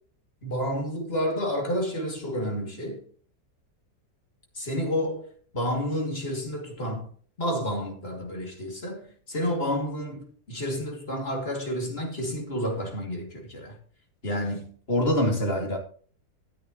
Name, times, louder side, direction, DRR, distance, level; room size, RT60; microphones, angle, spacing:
voice 1, 0.4-3.0 4.6-5.3 5.5-7.1 7.4-13.8 14.2-15.8, equal, 35° left, 2.8 m, -29 dB
12.5 x 10.5 x 3.0 m
omnidirectional pair, 1.7 m